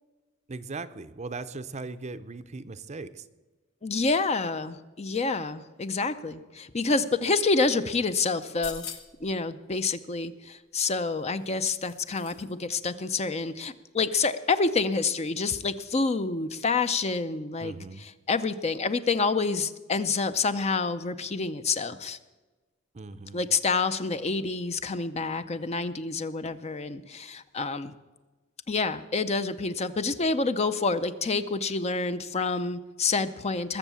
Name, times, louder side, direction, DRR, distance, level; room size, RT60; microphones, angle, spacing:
voice 1, 0.5-3.3 17.6-18.1 22.9-23.4, right 3 dB, 35° right, 12 dB, 0.6 m, -39 dB
voice 2, 3.8-8.8 9.2-22.2 23.3-27.9 28.7-33.8, left 4 dB, 30° left, 11 dB, 0.6 m, -28 dB
sound 1, 8.4-9.3 10.8-12.5 12.8-12.9, left 7 dB, 75° left, 1.3 m, -44 dB
21.0 x 7.2 x 7.0 m, 1.2 s
head